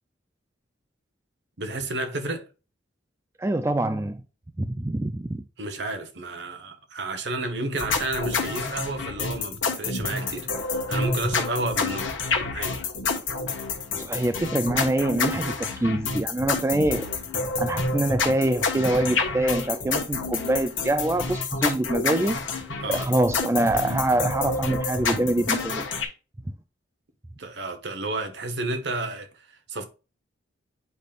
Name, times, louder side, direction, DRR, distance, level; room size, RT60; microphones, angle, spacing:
voice 1, 1.6-2.5 5.6-12.1 12.5-12.8 22.8-23.1 27.4-29.8, right 2 dB, 60° right, 1.0 m, -31 dB
voice 2, 3.4-4.2 4.6-5.4 14.0-17.1 17.6-22.4 22.9-25.9, right 1 dB, 15° right, 0.3 m, -25 dB
sound 1, 7.8-26.0, left 4 dB, 80° left, 1.3 m, -28 dB
8.2 x 5.2 x 2.4 m
head